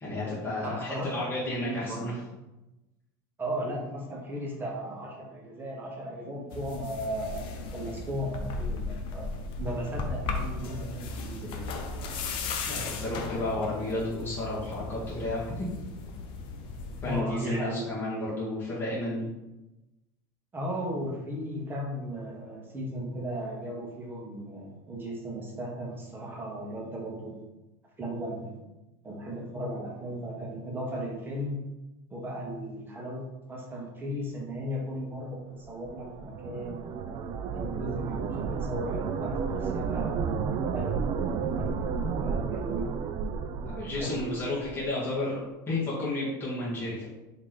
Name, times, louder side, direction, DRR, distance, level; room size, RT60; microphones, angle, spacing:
voice 1, 0.0-2.1 12.7-15.7 16.5-16.7 17.0-19.3 43.6-47.1, left 2 dB, 20° left, -9 dB, 1.2 m, -32 dB
voice 2, 0.6-1.2 1.6-2.1 3.4-9.3 9.6-11.6 17.0-17.8 20.5-27.4 28.0-28.5 29.0-31.6 32.1-37.0 37.5-40.5 40.7-42.9 44.0-44.5, equal, 20° right, -1 dB, 1.0 m, -36 dB
sound 1, 6.5-17.2, left 3 dB, 55° left, 0.6 m, -36 dB
sound 2, 35.6-44.9, right 5 dB, 45° right, 0.3 m, -32 dB
3.1 x 2.8 x 3.9 m, 1.0 s
supercardioid pair, 105°, 11 cm